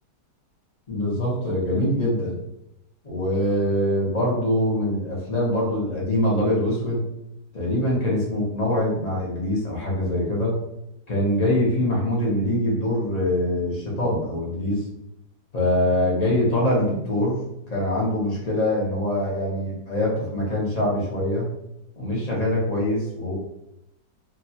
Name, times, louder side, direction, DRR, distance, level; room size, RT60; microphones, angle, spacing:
voice 1, 0.9-2.4 3.0-7.1 7.5-10.6 11.1-14.8 15.5-17.4 17.7-21.4 22.0-23.3, left 1 dB, 50° left, -6 dB, 0.5 m, -23 dB
2.8 x 2.2 x 2.7 m, 0.86 s
omnidirectional pair, 1.9 m